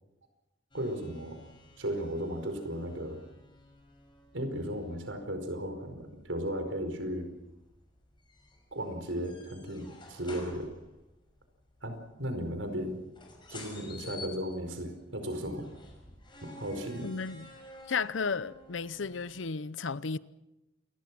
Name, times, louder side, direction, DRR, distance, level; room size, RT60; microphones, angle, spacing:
sound 1, 0.7-19.4, left 2 dB, 25° left, 5.9 m, -53 dB
voice 1, 0.7-1.5 1.8-3.2 4.3-7.3 8.7-10.7 11.8-13.1 13.5-15.6 16.4-17.1, equal, 85° right, 4.9 m, -35 dB
voice 2, 17.0-17.5 17.9-20.2, left 5 dB, 85° left, 0.8 m, -33 dB
28.0 x 21.0 x 6.2 m
head